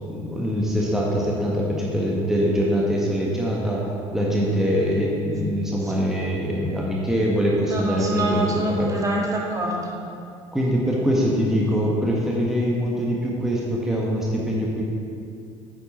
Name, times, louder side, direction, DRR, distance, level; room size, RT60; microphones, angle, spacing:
voice 1, 0.0-3.8 4.1-8.9 10.5-14.8, equal, 5° right, -4 dB, 1.5 m, -23 dB
voice 2, 7.6-10.0, right 1 dB, 20° right, -2 dB, 1.7 m, -25 dB
9.7 x 7.0 x 4.3 m, 2.5 s
figure-of-eight pair, 60°, 16 cm